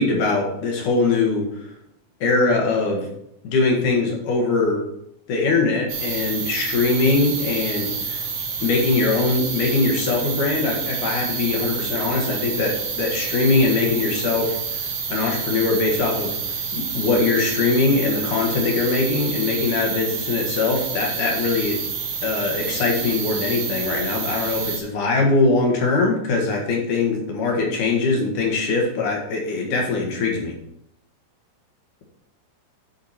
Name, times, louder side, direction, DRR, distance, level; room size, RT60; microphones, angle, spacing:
voice 1, 0.0-1.7 2.2-3.1 3.4-4.8 5.3-8.2 8.6-14.8 15.1-21.8 22.2-30.5, left 3 dB, 60° left, 0 dB, 2.9 m, -22 dB
sound 1, 5.9-24.8, right 6 dB, 55° right, 1.9 m, -28 dB
10.5 x 5.1 x 4.3 m, 0.77 s
omnidirectional pair, 4.5 m